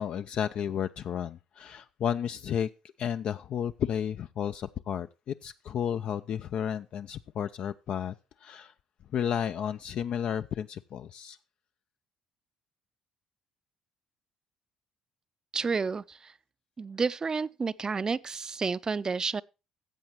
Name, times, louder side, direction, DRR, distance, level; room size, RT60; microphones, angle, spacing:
voice 1, 0.0-2.7 3.0-8.1 8.4-8.7 9.1-11.4, left 8 dB, 60° left, 0.4 m, -32 dB
voice 2, 15.5-16.3 16.8-19.4, right 4 dB, 30° right, 0.5 m, -30 dB
14.5 x 7.8 x 3.0 m
hypercardioid pair, 60°, 2 cm